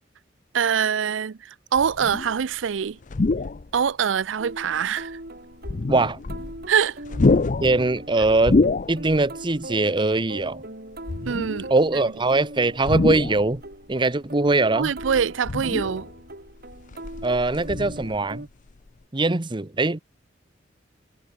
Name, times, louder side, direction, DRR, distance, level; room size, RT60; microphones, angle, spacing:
voice 1, 0.5-3.0 3.7-5.2 6.7-7.0 11.3-11.7 14.7-16.1, right 7 dB, 85° right, 0.5 m, -24 dB
sound 1, 1.8-2.4 3.0-3.8 4.4-4.5 5.5-6.7 7.0-9.3 9.6-9.7 11.0-11.8 12.8-13.7 14.8-16.2 16.6-18.4 18.7-18.9, left 3 dB, 45° left, 0.6 m, -26 dB
sound 2, 4.4-18.5, right 1 dB, 55° right, 6.3 m, -40 dB
voice 2, 5.9-6.2 7.6-8.6 8.9-10.6 11.7-13.6 13.9-14.9 17.2-18.5 19.1-20.0, right 2 dB, 25° right, 0.9 m, -22 dB
head